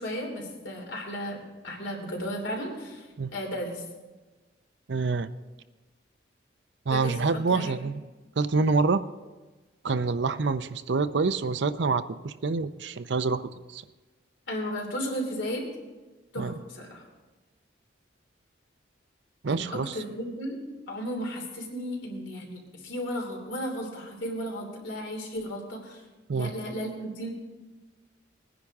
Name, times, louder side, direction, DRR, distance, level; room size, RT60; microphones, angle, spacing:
voice 1, 0.0-3.8 6.9-7.9 14.5-15.7 16.3-17.0 19.5-20.6 20.9-26.0 26.3-27.3, equal, 75° left, 1 dB, 3.1 m, -34 dB
voice 2, 4.9-5.3 6.9-8.0 8.4-9.0 9.8-13.4 13.7-13.8 16.4-16.5 19.4-20.0 26.3-26.5, right 4 dB, 65° right, 12 dB, 0.5 m, -26 dB
20.0 x 10.0 x 3.6 m, 1.2 s
head